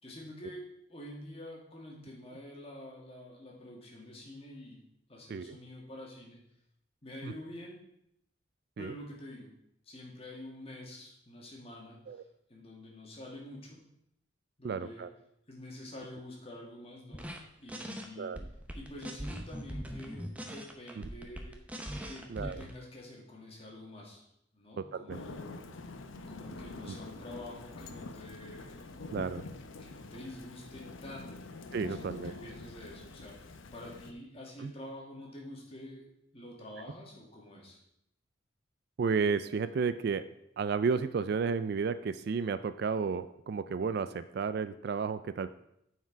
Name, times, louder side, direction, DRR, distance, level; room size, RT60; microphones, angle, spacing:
voice 1, 0.0-6.4 7.0-7.8 8.8-9.5 9.8-12.2 12.5-13.8 14.6-15.1 15.5-17.3 17.6-18.3 18.7-21.6 22.1-24.2 24.5-25.5 26.3-29.0 29.8-31.4 31.8-37.8, left 1 dB, 30° left, -1 dB, 1.8 m, -47 dB
voice 2, 14.6-15.1 18.2-18.4 22.3-22.6 24.8-25.2 26.8-27.0 29.1-29.4 31.7-32.3 34.6-34.7 39.0-40.2 40.6-45.5, right 5 dB, 55° right, 13 dB, 0.3 m, -32 dB
sound 1, 17.1-17.4 17.7-18.0 18.3-22.7, equal, 5° right, 0.7 m, -41 dB
Thunder / Rain, 25.1-34.1, left 2 dB, 80° left, 0.7 m, -46 dB
9.4 x 4.7 x 4.6 m, 0.77 s
head